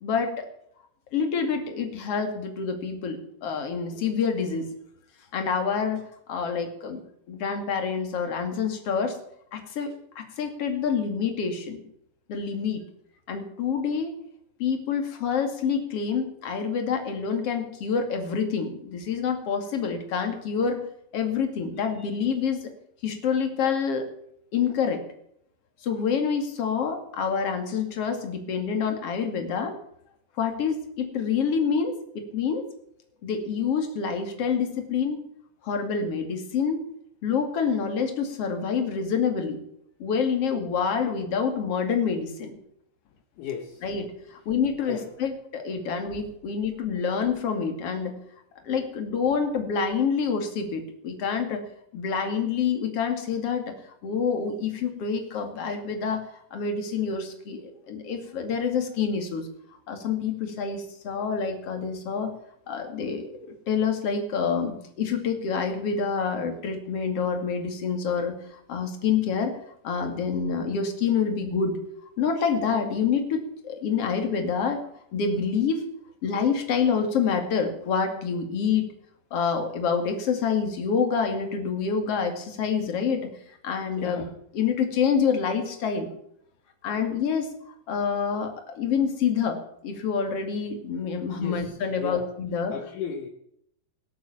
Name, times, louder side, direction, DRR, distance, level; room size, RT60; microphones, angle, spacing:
voice 1, 0.0-0.5 1.1-4.7 5.3-7.0 7.3-9.2 9.5-11.8 12.3-12.8 13.3-14.1 14.6-20.8 21.1-22.7 23.0-24.1 24.5-25.0 25.8-29.7 30.4-32.6 33.2-35.2 35.6-36.8 37.2-39.6 40.0-42.6 43.8-44.0 44.3-48.1 48.6-51.7 51.9-53.7 54.0-59.5 59.9-62.3 62.7-63.4 63.7-69.6 69.8-71.8 72.2-74.8 75.1-75.8 76.2-78.8 79.3-83.3 83.6-84.2 84.5-86.1 86.8-87.5 87.9-92.7, left 6 dB, 40° left, 5 dB, 2.7 m, -27 dB
voice 2, 43.4-43.8 44.9-45.0 84.0-84.3 91.4-92.3 92.7-93.3, left 7 dB, 70° left, 5 dB, 2.0 m, -35 dB
20.0 x 8.4 x 7.1 m, 0.72 s
omnidirectional pair, 5.0 m